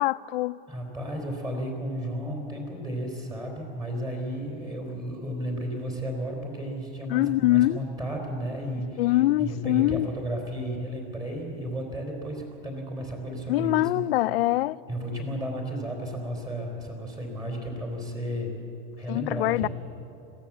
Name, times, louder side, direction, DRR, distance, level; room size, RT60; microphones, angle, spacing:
voice 1, 0.0-0.6 7.1-7.8 9.0-10.1 13.5-14.8 19.1-19.7, left 17 dB, 80° left, 0.5 m, -23 dB
voice 2, 0.7-13.9 14.9-18.5 19.0-19.7, equal, 15° right, 3.8 m, -33 dB
22.5 x 16.0 x 7.3 m
supercardioid pair, 150°, 29 cm